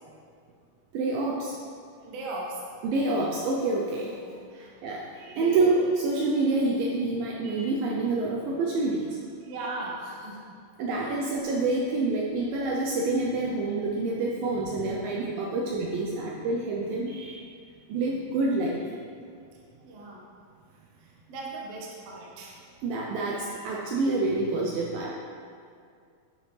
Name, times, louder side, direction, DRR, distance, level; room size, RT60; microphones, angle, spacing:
voice 1, 0.9-1.5 2.8-4.1 4.8-9.2 10.8-17.4 17.9-18.8 22.8-25.1, right 2 dB, 80° right, -2 dB, 2.2 m, -27 dB
voice 2, 2.0-2.6 4.2-4.7 5.3-5.6 9.4-10.4 11.0-11.3 19.8-20.2 21.0-22.6, right 2 dB, 60° right, -3 dB, 1.7 m, -38 dB
11.5 x 6.2 x 3.2 m, 2.3 s
omnidirectional pair, 4.5 m